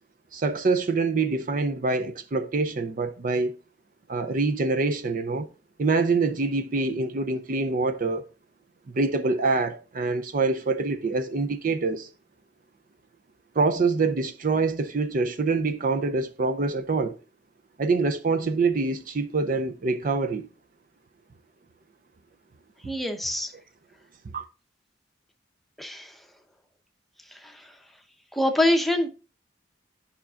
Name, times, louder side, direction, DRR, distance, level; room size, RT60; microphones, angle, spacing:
voice 1, 0.3-3.5 4.1-5.5 5.8-8.2 8.9-12.1 13.6-17.1 17.8-20.5 24.3-24.4, right 3 dB, 50° right, 0.5 m, -25 dB
voice 2, 22.9-23.5 25.8-26.1 28.3-29.1, left 1 dB, ahead, 0.8 m, -24 dB
11.0 x 5.7 x 2.4 m
head